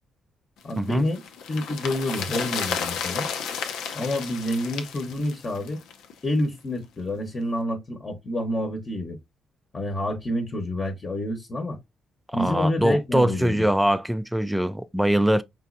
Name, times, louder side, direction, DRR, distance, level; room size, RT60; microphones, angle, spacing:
voice 1, 0.6-1.2 1.5-3.3 3.9-5.8 6.2-9.2 9.7-11.8 12.3-13.6, left 1 dB, 35° left, 1.0 m, -28 dB
sound 1, 0.7-6.1 6.4-6.5, left 7 dB, 85° left, 0.7 m, -32 dB
voice 2, 12.3-15.4, right 1 dB, 5° right, 0.4 m, -22 dB
5.4 x 3.1 x 2.5 m
cardioid pair, 90°, 0 cm